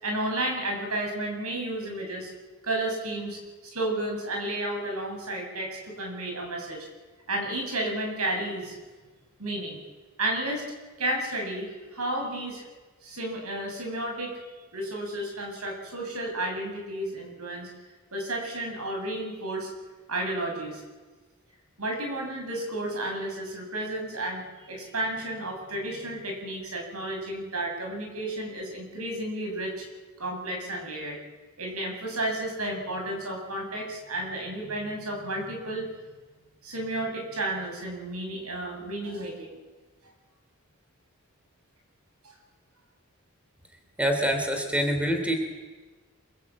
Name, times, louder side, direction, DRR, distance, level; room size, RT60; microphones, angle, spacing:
voice 1, 0.0-2.3 2.6-6.9 7.3-8.7 9.4-9.8 10.2-10.6 11.0-12.6 13.0-14.4 14.7-17.7 18.1-19.7 20.1-20.8 21.8-29.9 30.2-31.2 31.6-35.9 36.6-39.6 42.2-42.3, right 1 dB, 80° right, 2 dB, 7.7 m, -32 dB
voice 2, 44.0-45.3, equal, 5° right, 5 dB, 3.2 m, -25 dB
26.5 x 22.5 x 8.7 m, 1.3 s
head